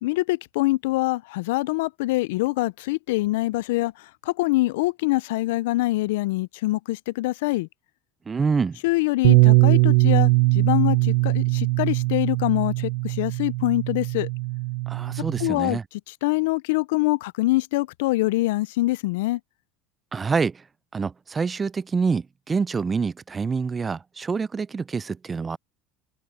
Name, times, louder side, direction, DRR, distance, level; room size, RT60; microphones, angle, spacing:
voice 1, 0.0-7.7 8.8-14.3 15.4-19.4, left 19 dB, 85° left, 0.3 m, -24 dB
voice 2, 8.3-8.8 14.9-15.8 20.1-20.6 20.9-25.6, right 5 dB, 20° right, 0.4 m, -26 dB
Bass guitar, 9.2-15.5, right 22 dB, 70° right, 0.7 m, -21 dB
open air
supercardioid pair, 135°, 0 cm